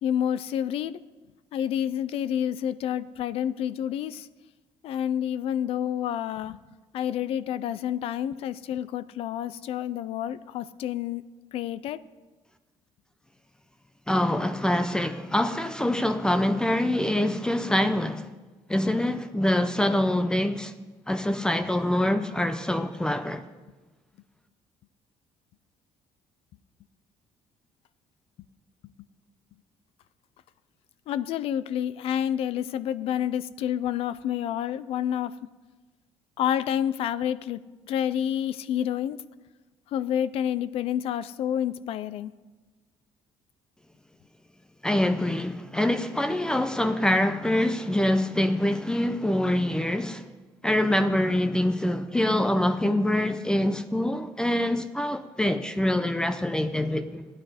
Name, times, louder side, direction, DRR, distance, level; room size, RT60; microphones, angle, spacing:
voice 1, 0.0-1.0 1.5-4.3 4.8-6.6 6.9-11.2 11.5-12.0 31.1-35.3 36.4-37.6 37.9-39.2 39.9-42.3, left 10 dB, 70° left, 0.4 m, -29 dB
voice 2, 14.1-18.3 18.7-20.8 21.1-23.4 44.8-50.3 50.6-57.3, left 1 dB, 5° left, 0.5 m, -25 dB
14.5 x 9.7 x 5.0 m
cardioid pair, 145°, 10 cm